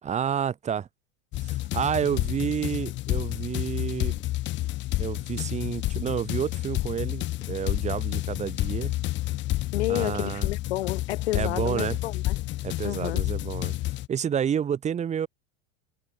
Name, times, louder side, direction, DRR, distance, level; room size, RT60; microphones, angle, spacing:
voice 1, 0.0-0.9 1.4-4.2 5.0-8.9 9.9-10.5 11.3-12.0 12.6-13.7 14.1-15.3, right 8 dB, 20° right, 1.6 m, -29 dB
sound 1, 1.3-14.1, left 17 dB, 35° left, 1.1 m, -30 dB
voice 2, 9.7-12.4 12.8-13.2, left 16 dB, 85° left, 2.4 m, -31 dB
supercardioid pair, 140°, 32 cm